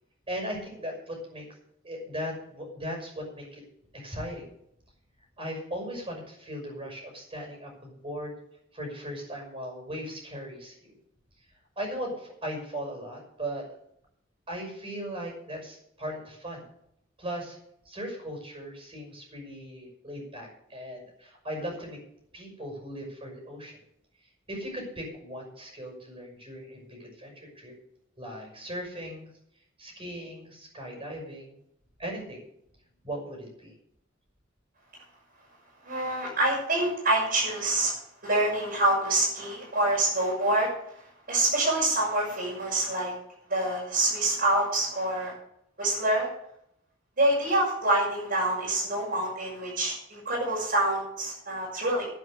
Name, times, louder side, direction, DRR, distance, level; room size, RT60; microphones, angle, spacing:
voice 1, 0.3-1.4 1.8-3.6 3.9-4.5 5.4-8.4 8.7-10.9 11.8-13.6 14.5-16.6 17.2-17.6 17.8-22.0 22.3-23.8 24.5-27.7 28.2-29.3 29.8-31.6 32.0-32.4 33.0-33.7, equal, 30° right, 2 dB, 6.1 m, -38 dB
voice 2, 35.8-38.0 38.2-40.7 41.3-43.1 43.5-45.3 45.8-46.3 47.2-52.1, right 1 dB, 50° right, -7 dB, 6.6 m, -26 dB
11.0 x 10.5 x 6.6 m, 0.74 s
head